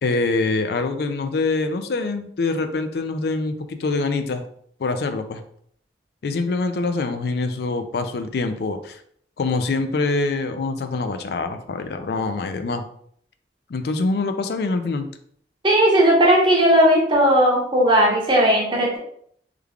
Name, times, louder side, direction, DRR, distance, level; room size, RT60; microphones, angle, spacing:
voice 1, 0.0-4.5 4.8-5.4 6.2-9.0 9.4-12.9 13.7-15.1, left 3 dB, 60° left, 8 dB, 0.4 m, -24 dB
voice 2, 15.6-19.0, right 1 dB, 25° right, -2 dB, 0.7 m, -16 dB
3.2 x 2.3 x 3.5 m, 0.66 s
head